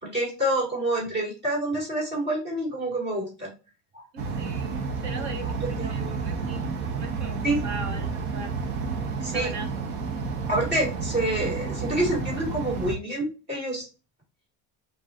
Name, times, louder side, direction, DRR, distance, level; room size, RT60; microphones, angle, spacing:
voice 1, 0.0-3.5 3.9-4.0 5.2-6.2 7.4-7.6 9.2-9.5 10.5-13.8, right 1 dB, 25° right, -2 dB, 2.3 m, -28 dB
voice 2, 4.1-8.6 9.2-9.7, right 4 dB, 40° right, 6 dB, 0.9 m, -39 dB
sound 1, 4.2-12.9, right 4 dB, 65° right, 1.1 m, -31 dB
7.2 x 2.6 x 2.5 m, 0.32 s
cardioid pair, 165°, 42 cm